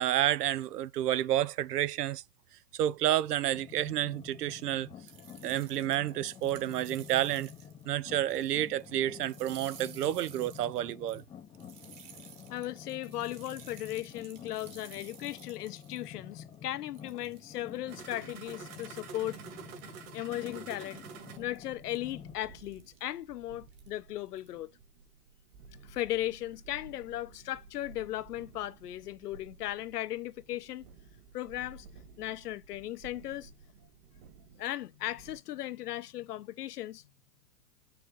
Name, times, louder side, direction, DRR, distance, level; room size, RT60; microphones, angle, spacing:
voice 1, 0.0-2.2 2.7-4.9 5.4-7.5 7.9-11.2, right 12 dB, 85° right, 0.6 m, -30 dB
sound 1, 3.5-22.4, left 8 dB, 10° left, 0.6 m, -50 dB
sound 2, 5.1-7.8 8.1-8.9 9.2-16.1 16.5-16.6 16.9-17.8 18.3-18.9 19.6-20.0 20.5-20.7 21.2-21.6 21.9-22.1 22.6-23.0 23.7-23.9 24.3-24.5, right 8 dB, 30° right, 1.5 m, -54 dB
voice 2, 12.5-19.4 20.1-21.0 21.4-24.7 25.8-30.9 31.3-31.9 32.2-33.5 34.6-37.1, left 14 dB, 75° left, 0.9 m, -37 dB
sound 3, 17.9-35.4, right 6 dB, 50° right, 2.7 m, -52 dB
6.0 x 3.4 x 5.3 m
hypercardioid pair, 140°, 46 cm